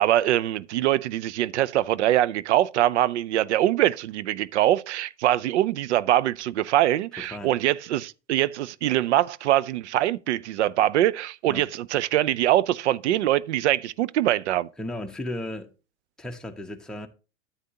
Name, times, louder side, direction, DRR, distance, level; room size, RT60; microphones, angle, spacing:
voice 1, 0.0-14.7, right 13 dB, 80° right, 0.5 m, -23 dB
voice 2, 7.2-7.5 11.5-11.7 14.8-15.7 16.2-17.1, left 1 dB, ahead, 1.0 m, -35 dB
9.6 x 8.2 x 2.8 m
hypercardioid pair, 100°, 34 cm